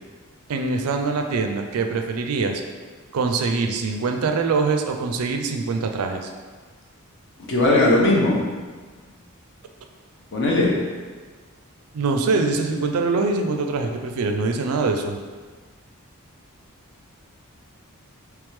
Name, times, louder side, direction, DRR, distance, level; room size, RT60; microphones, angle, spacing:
voice 1, 0.5-2.6 3.1-6.3 11.9-15.2, right 4 dB, 75° right, 5 dB, 0.4 m, -23 dB
voice 2, 7.5-8.4 10.3-10.7, left 2 dB, 55° left, -3 dB, 0.8 m, -18 dB
3.5 x 3.2 x 3.2 m, 1.4 s
head